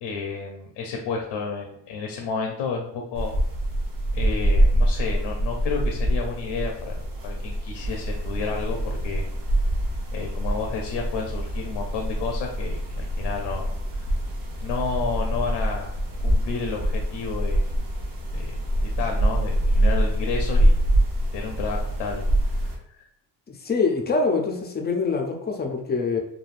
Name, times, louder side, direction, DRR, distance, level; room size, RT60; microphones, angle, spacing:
voice 1, 0.0-3.3 4.1-9.2 10.1-13.7 13.9-14.0 14.6-15.9 16.2-17.6 18.3-20.8 21.3-22.2, left 5 dB, 75° left, 2 dB, 0.6 m, -31 dB
sound 1, 3.1-22.8, right 1 dB, 45° right, 0.7 m, -25 dB
voice 2, 23.5-26.2, left 4 dB, 25° left, 2 dB, 0.4 m, -24 dB
3.3 x 2.2 x 2.4 m, 0.73 s
cardioid pair, 100°, 44 cm